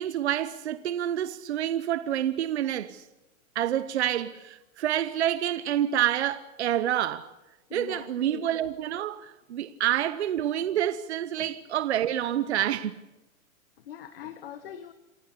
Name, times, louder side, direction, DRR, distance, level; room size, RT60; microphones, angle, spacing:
voice 1, 0.0-3.0 3.5-7.3 7.7-13.0, right 11 dB, 50° right, 0.9 m, -28 dB
voice 2, 7.7-8.5 11.4-11.5 13.8-14.9, left 9 dB, 45° left, 1.4 m, -42 dB
28.0 x 17.5 x 8.5 m
hypercardioid pair, 180°, 41 cm